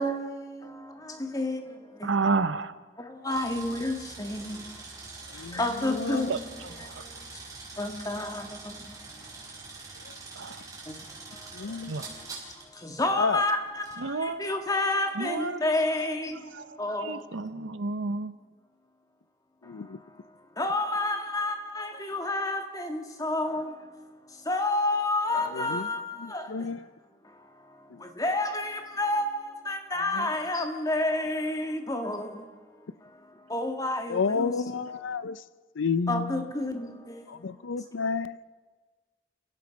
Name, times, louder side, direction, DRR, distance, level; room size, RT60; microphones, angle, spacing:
voice 1, 0.0-2.1 3.0-4.8 5.3-6.4 6.8-7.4 7.8-9.0 10.9-12.3 12.6-17.3 19.6-26.7 27.2-32.6 33.0-34.5 36.1-37.7, left 2 dB, 20° left, 1.9 m, -31 dB
voice 2, 2.0-2.7 6.3-6.4 6.6-7.0 10.4-10.6 11.9-12.1 14.0-14.5 15.2-16.1 16.4-18.3, right 4 dB, 80° right, 0.8 m, -31 dB
sound 1, 3.3-12.8 13.8-14.0, right 3 dB, 20° right, 5.1 m, -44 dB
voice 3, 5.8-6.3 11.5-11.9 13.2-13.4 19.7-20.0 25.5-25.9 26.2-26.8 27.9-28.0 30.1-30.3 34.1-35.4 35.8-36.3 37.3-38.4, left 5 dB, 85° left, 0.5 m, -30 dB
29.5 x 16.5 x 5.3 m
head